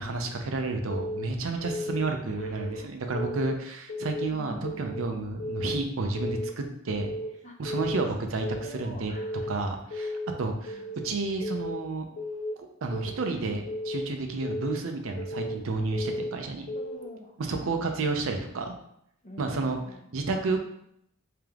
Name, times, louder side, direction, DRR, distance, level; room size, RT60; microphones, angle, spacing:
voice 1, 0.0-7.1 7.6-9.1 9.5-12.1 12.8-16.7 17.4-18.8 19.4-19.8 20.1-20.6, right 3 dB, 75° right, 4 dB, 0.5 m, -31 dB
Keyboard (musical) / Alarm, 0.9-1.3 1.6-2.0 2.4-2.8 3.1-3.5 3.9-4.3 4.6-5.0 5.4-5.8 6.1-6.5 6.9-7.3 7.6-8.0 8.4-8.8 9.2-9.5 9.9-10.3 10.7-11.0 11.4-11.8 12.2-12.5 12.9-13.3 13.7-14.0 14.4-14.8 15.2-15.5 15.9-16.3 16.7-17.1, left 1 dB, 85° left, 1.0 m, -34 dB
voice 2, 2.2-2.9 4.3-4.7 7.4-7.5 8.6-9.5 10.7-10.9 16.7-17.7 19.2-20.2, equal, 35° left, 1 dB, 0.6 m, -46 dB
3.3 x 2.9 x 3.5 m, 0.75 s
head